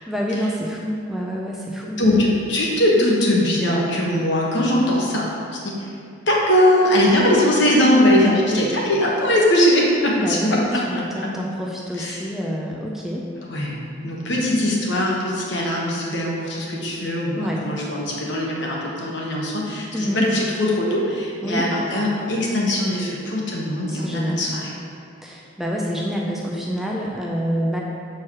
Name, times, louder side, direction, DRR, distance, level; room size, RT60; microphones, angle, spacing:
voice 1, 0.0-2.0 8.2-8.6 10.1-13.2 17.4-17.6 19.9-20.3 21.4-21.6 23.9-24.5 25.2-27.8, equal, ahead, -3 dB, 0.5 m, -27 dB
voice 2, 2.0-5.3 5.5-5.7 6.3-10.8 11.1-11.3 12.0-12.2 13.4-13.8 14.0-24.7, left 1 dB, 60° left, -3 dB, 1.3 m, -20 dB
7.2 x 4.6 x 4.7 m, 2.4 s
head